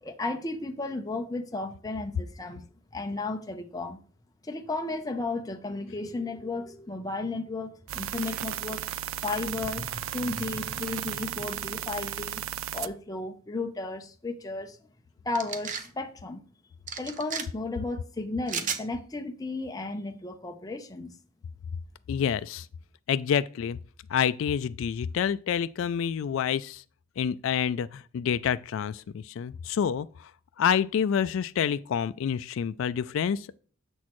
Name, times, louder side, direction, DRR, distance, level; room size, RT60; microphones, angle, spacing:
voice 1, 0.0-2.6 2.9-4.0 4.5-8.8 9.2-12.4 12.7-14.8 15.3-16.4 17.0-21.1, left 2 dB, 15° left, 0.6 m, -34 dB
sound 1, 7.9-12.9, right 11 dB, 70° right, 0.4 m, -35 dB
sound 2, 15.3-15.9 16.9-17.4 18.5-18.8, right 6 dB, 40° right, 0.7 m, -33 dB
voice 2, 22.1-22.7 23.1-23.8 24.1-26.8 27.2-30.3 30.6-33.6, left 8 dB, 65° left, 0.3 m, -28 dB
7.3 x 6.2 x 3.0 m
head